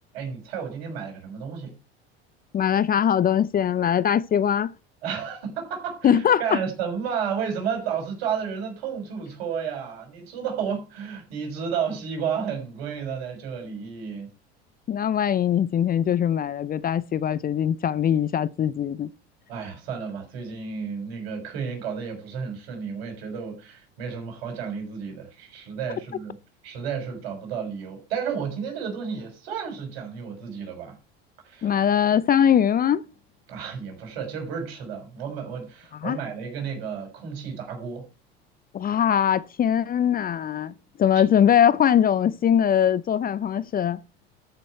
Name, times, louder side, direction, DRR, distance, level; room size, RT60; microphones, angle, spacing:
voice 1, 0.1-1.7 5.0-14.3 19.5-26.3 26.6-31.0 31.4-31.8 33.5-38.1, right 7 dB, 70° right, 6.2 m, -32 dB
voice 2, 2.5-4.7 6.0-6.6 14.9-19.1 31.6-33.0 36.0-36.2 38.7-40.7 41.0-44.0, left 9 dB, 30° left, 0.6 m, -21 dB
13.5 x 6.7 x 4.7 m
hypercardioid pair, 85°, 32 cm